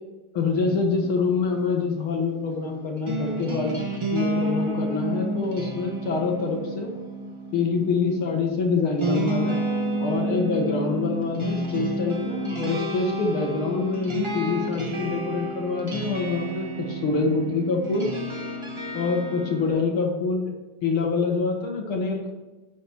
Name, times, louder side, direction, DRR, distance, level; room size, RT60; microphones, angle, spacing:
voice 1, 0.3-3.8 4.1-6.9 7.5-9.6 10.0-18.1 18.9-20.5 20.8-22.3, left 4 dB, 80° left, 0 dB, 2.3 m, -25 dB
sound 1, 0.5-19.7, right 1 dB, 20° right, 1.0 m, -31 dB
10.5 x 7.0 x 4.6 m, 1.2 s
omnidirectional pair, 2.3 m